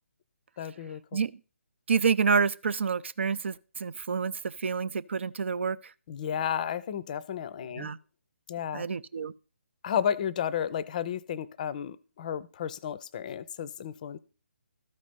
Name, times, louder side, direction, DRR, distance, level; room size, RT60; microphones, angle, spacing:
voice 1, 0.6-1.2 6.1-7.9 8.5-8.9 9.8-14.2, left 9 dB, 35° left, 0.5 m, -32 dB
voice 2, 1.9-5.8 7.8-8.0 8.7-9.3, right 5 dB, 55° right, 0.5 m, -28 dB
13.0 x 5.1 x 5.8 m
figure-of-eight pair, 145°, 8 cm